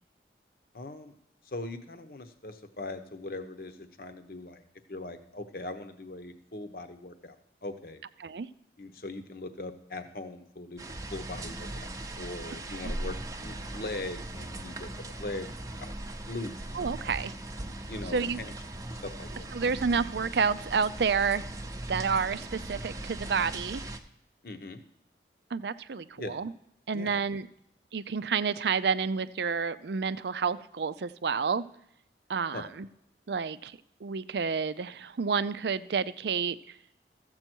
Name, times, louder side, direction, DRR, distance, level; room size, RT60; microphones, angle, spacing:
voice 1, 0.7-1.1 1.4-4.6 4.9-8.0 8.8-10.8 11.1-15.5 15.8-15.9 16.3-16.9 17.9-18.5 19.0-19.5 24.4-24.8 26.2-26.3 26.9-27.2 32.5-32.7, left 2 dB, 55° left, 7 dB, 1.0 m, -40 dB
sound 1, 10.8-24.0, right 1 dB, 20° right, 0.7 m, -39 dB
voice 2, 16.7-17.3 18.1-18.4 19.5-21.4 21.9-23.8 25.5-26.5 26.9-27.5 27.9-31.6 32.3-32.9 33.3-36.6, right 5 dB, 75° right, 14 dB, 0.5 m, -29 dB
14.0 x 7.8 x 4.5 m, 0.77 s
head